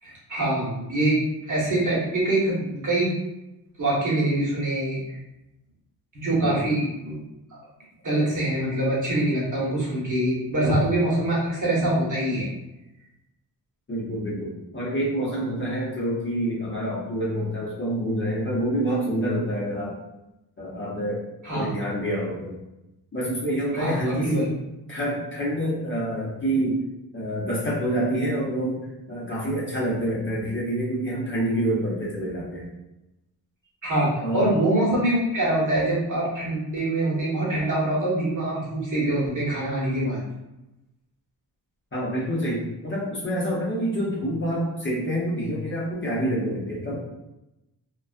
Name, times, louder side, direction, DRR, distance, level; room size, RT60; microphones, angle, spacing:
voice 1, 0.0-3.1 3.8-5.2 6.1-7.2 8.0-12.5 21.4-21.7 23.7-24.4 33.8-40.2, right 1 dB, 45° right, -6 dB, 1.1 m, -24 dB
voice 2, 6.3-6.6 13.9-20.0 20.6-21.2 21.5-22.6 23.1-24.6 24.9-26.8 27.1-28.8 29.1-32.7 34.2-34.4 41.9-47.0, right 1 dB, 30° left, -6 dB, 0.7 m, -27 dB
2.3 x 2.3 x 2.4 m, 0.95 s
cardioid pair, 95°, 42 cm